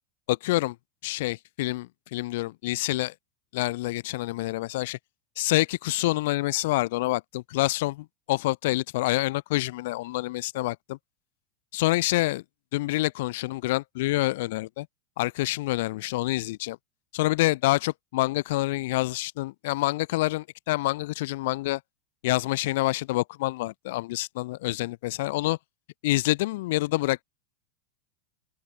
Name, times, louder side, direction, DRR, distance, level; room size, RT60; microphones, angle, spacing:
voice 1, 0.3-0.8 1.0-3.1 3.5-5.0 5.4-11.0 11.7-12.4 12.7-14.9 15.2-16.8 17.1-21.8 22.2-25.6 26.0-27.2, left 19 dB, 60° left, 0.3 m, -27 dB
open air
supercardioid pair, 155°, 0 cm